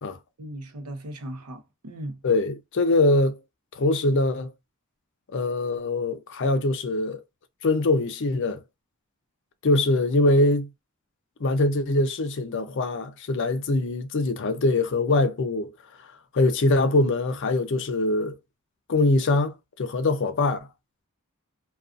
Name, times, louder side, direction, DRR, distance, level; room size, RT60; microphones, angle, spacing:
voice 1, 0.4-2.2, right 1 dB, 85° right, 0.7 m, -37 dB
voice 2, 2.2-3.4 3.7-4.5 5.3-7.2 7.6-8.6 9.6-10.7 11.4-15.7 16.3-18.4 18.9-20.6, left 2 dB, 55° left, 0.5 m, -23 dB
2.5 x 2.3 x 2.4 m
head